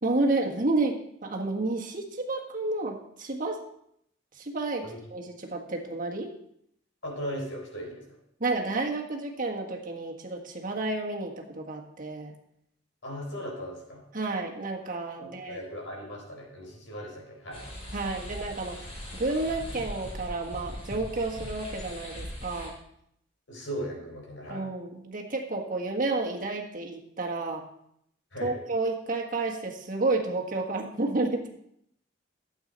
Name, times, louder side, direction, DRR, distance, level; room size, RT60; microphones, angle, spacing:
voice 1, 0.0-3.6 4.4-4.8 5.1-6.3 8.4-12.3 14.1-15.6 17.9-18.8 19.1-22.7 24.5-27.6 28.4-31.5, right 2 dB, 45° right, 1 dB, 1.5 m, -30 dB
voice 2, 7.0-8.2 13.0-14.0 15.2-17.7 23.5-24.7 28.3-28.7, equal, 85° left, 0 dB, 3.9 m, -38 dB
sound 1, 17.5-22.7, equal, 35° left, 3.9 m, -40 dB
12.5 x 8.2 x 4.1 m, 0.73 s
head